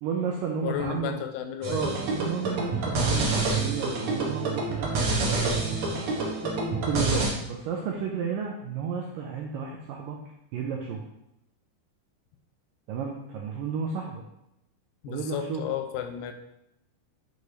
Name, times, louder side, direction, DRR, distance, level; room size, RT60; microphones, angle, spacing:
voice 1, 0.0-1.2 1.7-5.8 6.7-10.2 10.5-11.0 12.9-14.2 15.1-15.7, right 6 dB, 85° right, 0 dB, 1.9 m, -32 dB
voice 2, 0.6-1.8 15.0-16.3, left 9 dB, 85° left, 6 dB, 2.7 m, -32 dB
sound 1, 1.6-7.3, right 3 dB, 60° right, 1.9 m, -27 dB
8.0 x 4.2 x 4.9 m, 0.85 s
omnidirectional pair, 4.8 m